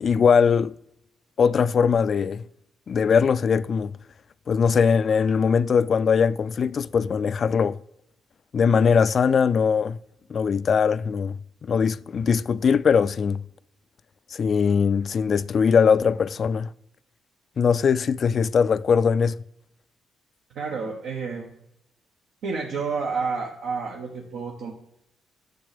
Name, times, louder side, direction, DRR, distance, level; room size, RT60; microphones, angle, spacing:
voice 1, 0.0-0.7 1.4-2.4 2.9-4.0 4.5-7.8 8.5-10.0 10.3-13.5 14.3-16.7 17.6-19.4, left 6 dB, 50° left, 0.3 m, -21 dB
voice 2, 20.5-21.6 22.4-24.7, right 5 dB, 80° right, 1.3 m, -30 dB
9.4 x 6.4 x 5.1 m
cardioid pair, 90°, 0 cm